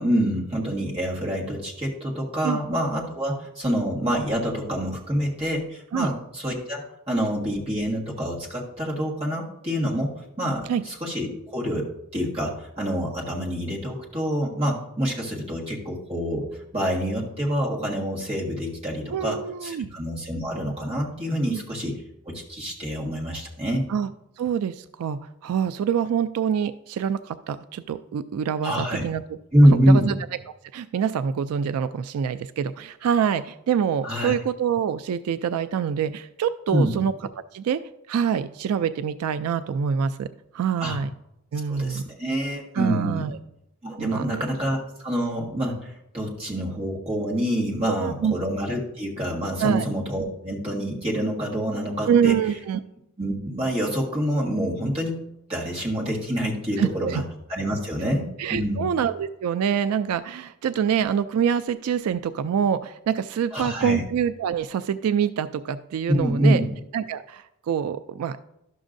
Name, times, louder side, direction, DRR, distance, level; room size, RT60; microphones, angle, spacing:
voice 1, 0.0-11.9 12.1-21.9 22.2-23.9 28.6-29.0 29.5-30.1 34.0-34.3 36.7-37.0 40.8-41.0 41.7-43.3 43.8-52.3 53.2-55.2 55.5-57.2 57.5-58.9 63.5-64.0 66.1-66.7, equal, 25° right, -3 dB, 1.5 m, -26 dB
voice 2, 19.1-19.9 21.5-21.6 23.9-24.1 24.4-29.2 29.6-30.1 30.7-37.1 37.5-37.8 38.1-40.3 40.5-41.1 41.5-42.1 42.7-43.4 44.0-44.5 47.8-48.3 49.6-49.9 52.0-52.8 56.8-57.2 58.4-66.6 66.9-68.4, right 8 dB, 85° right, 12 dB, 0.3 m, -25 dB
12.0 x 6.2 x 2.6 m, 0.83 s
head